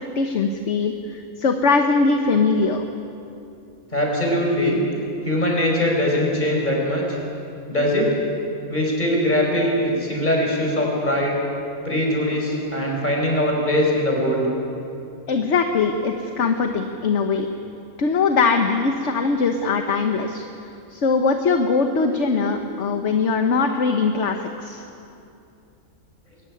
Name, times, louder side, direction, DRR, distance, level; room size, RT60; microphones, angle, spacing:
voice 1, 0.1-2.9 15.3-17.5 18.0-20.5 20.9-24.8, left 4 dB, 60° left, 5 dB, 1.4 m, -21 dB
voice 2, 3.9-4.8 5.2-7.2 7.7-8.1 8.7-11.4 11.8-14.5, left 1 dB, 30° left, -1 dB, 5.2 m, -21 dB
22.5 x 15.0 x 9.9 m, 2.7 s
omnidirectional pair, 1.4 m